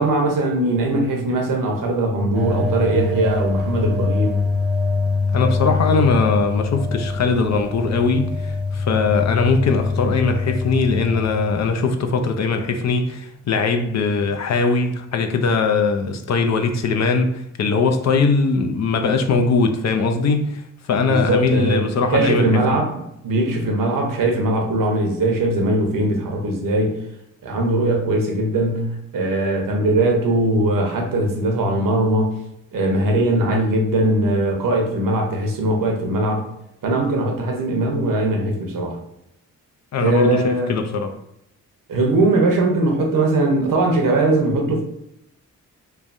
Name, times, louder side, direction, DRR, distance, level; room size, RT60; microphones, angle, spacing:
voice 1, 0.0-4.4 21.0-27.0 27.4-32.4 32.7-36.5 36.8-39.0 40.0-40.8 41.9-44.8, right 2 dB, 65° right, 0.8 m, -20 dB
sound 1, 2.3-11.9, left 4 dB, ahead, 0.4 m, -24 dB
voice 2, 5.3-20.6 20.9-22.8 39.9-41.1, left 4 dB, 50° left, 0.5 m, -20 dB
3.2 x 2.2 x 2.5 m
supercardioid pair, 50°, 35 cm